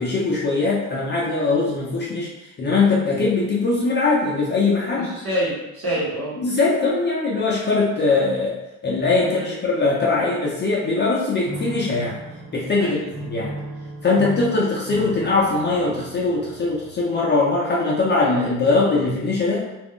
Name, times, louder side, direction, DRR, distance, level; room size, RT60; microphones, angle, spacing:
voice 1, 0.0-2.3 2.6-5.1 6.4-8.6 8.8-12.2 12.5-13.0 13.3-13.6 14.0-19.7, left 3 dB, 35° left, -4 dB, 0.5 m, -21 dB
voice 2, 4.9-6.4 9.2-9.6 12.8-13.1, right 1 dB, 45° right, -8 dB, 1.1 m, -27 dB
Piano, 11.4-17.4, right 2 dB, 85° right, 0.7 m, -36 dB
2.4 x 2.0 x 3.5 m, 1.0 s
cardioid pair, 140°, 33 cm